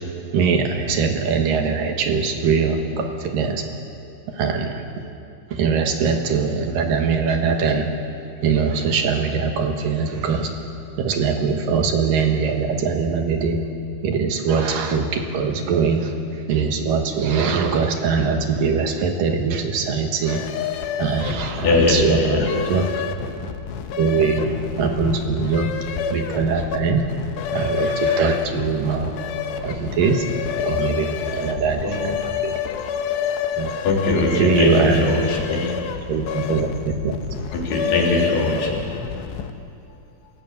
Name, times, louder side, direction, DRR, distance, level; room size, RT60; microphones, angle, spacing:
voice 1, 0.3-3.6 4.3-4.8 5.5-7.9 8.4-10.5 11.0-13.6 14.0-16.1 16.5-20.4 21.0-23.1 24.0-25.7 26.1-27.1 27.5-29.1 29.6-30.3 30.7-32.6 33.6-33.7 34.4-35.5 36.1-37.1, right 5 dB, 65° right, 4 dB, 2.8 m, -22 dB
sound 1, 20.3-39.7, left 8 dB, 85° left, 3.3 m, -28 dB
voice 2, 21.6-22.6 31.8-32.6 33.4-33.5 33.8-35.8 37.5-38.7, left 2 dB, 65° left, -2 dB, 5.5 m, -21 dB
28.0 x 16.5 x 8.4 m, 2.6 s
omnidirectional pair, 4.9 m